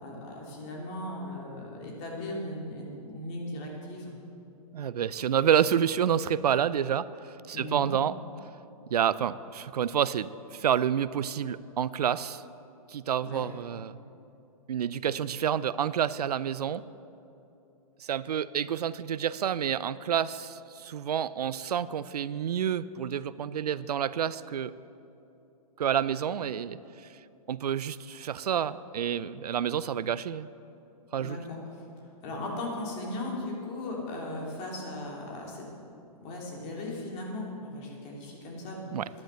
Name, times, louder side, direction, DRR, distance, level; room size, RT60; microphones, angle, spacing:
voice 1, 0.0-4.2 7.5-7.9 13.2-13.5 31.2-31.8 32.2-35.6 36.2-38.8, left 1 dB, 35° left, -2 dB, 3.0 m, -37 dB
voice 2, 4.7-8.1 8.9-12.4 12.9-14.0 14.7-16.8 18.0-24.7 25.8-26.8 27.5-30.5 31.1-31.4 38.9-39.1, right 9 dB, 90° right, 17 dB, 0.5 m, -29 dB
10.5 x 10.5 x 6.3 m, 2.8 s
hypercardioid pair, 135°, 19 cm